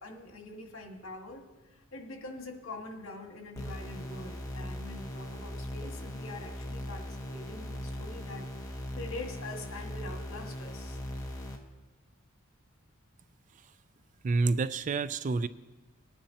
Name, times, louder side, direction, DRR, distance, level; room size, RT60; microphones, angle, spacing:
voice 1, 0.0-1.5 1.9-11.0, left 2 dB, 70° left, 2 dB, 1.7 m, -44 dB
sound 1, 3.6-11.6, left 1 dB, 15° left, 1.2 m, -39 dB
voice 2, 14.2-15.5, right 3 dB, 35° right, 15 dB, 0.3 m, -28 dB
20.5 x 10.0 x 2.8 m, 1.1 s
head